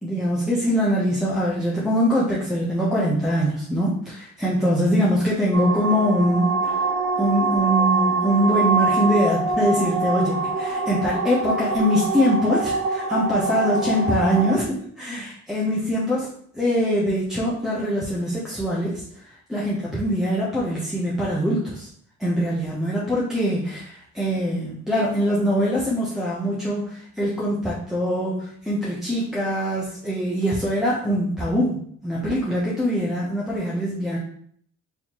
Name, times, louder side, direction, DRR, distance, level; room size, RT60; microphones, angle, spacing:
voice 1, 0.0-6.8 7.2-16.3 16.5-19.0 19.5-21.9 22.2-34.2, equal, ahead, -7 dB, 0.8 m, -23 dB
sound 1, 5.5-14.6, right 3 dB, 45° right, 0.7 m, -24 dB
4.1 x 2.7 x 3.0 m, 0.63 s
cardioid pair, 90°, 30 cm